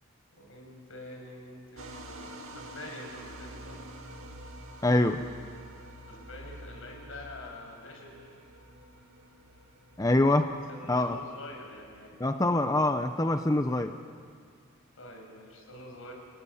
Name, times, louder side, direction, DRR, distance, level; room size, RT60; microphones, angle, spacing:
voice 1, 0.3-3.8 6.1-8.1 10.3-12.2 15.0-16.1, left 1 dB, 70° left, 1 dB, 6.8 m, -46 dB
sound 1, 1.8-12.6, right 1 dB, 75° right, 2.6 m, -48 dB
voice 2, 4.8-5.2 10.0-10.5 10.9-11.2 12.2-13.9, left 2 dB, 15° left, 6 dB, 0.8 m, -24 dB
29.0 x 19.0 x 10.0 m, 2.1 s
head